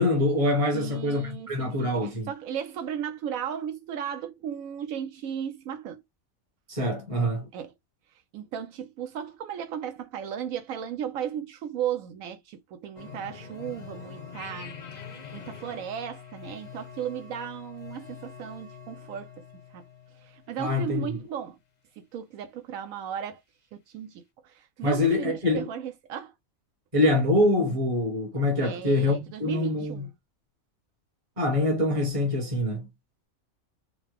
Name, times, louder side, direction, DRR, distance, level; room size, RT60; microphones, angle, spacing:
voice 1, 0.0-2.3 6.7-7.5 20.6-21.2 24.8-25.7 26.9-30.1 31.4-32.9, left 2 dB, 25° right, 1.3 m, -25 dB
voice 2, 0.7-6.0 7.5-7.7 8.3-15.1 15.3-19.9 20.2-21.6 22.0-23.4 23.7-26.3 28.6-30.1, right 9 dB, 80° right, 1.0 m, -35 dB
sound 1, 13.0-21.0, left 6 dB, 40° left, 0.7 m, -44 dB
3.8 x 2.2 x 3.3 m
omnidirectional pair, 1.4 m